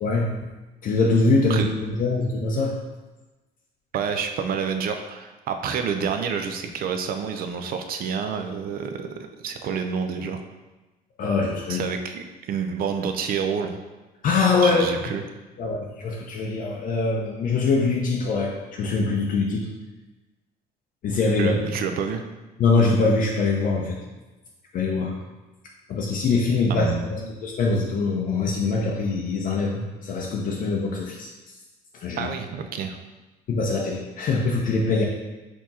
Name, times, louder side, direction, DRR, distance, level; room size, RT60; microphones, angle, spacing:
voice 1, 0.8-2.8 11.2-11.8 14.2-14.9 15.6-19.7 21.0-21.5 22.6-24.0 24.7-25.2 25.9-26.9 27.4-31.3 32.0-32.3 33.5-35.1, left 3 dB, 55° left, -2 dB, 0.6 m, -23 dB
voice 2, 3.9-10.4 11.7-13.8 14.6-15.2 21.4-22.2 26.7-27.3 32.2-33.0, right 6 dB, 60° right, 6 dB, 0.5 m, -28 dB
4.4 x 2.8 x 4.1 m, 1.1 s
cardioid pair, 110°, 17 cm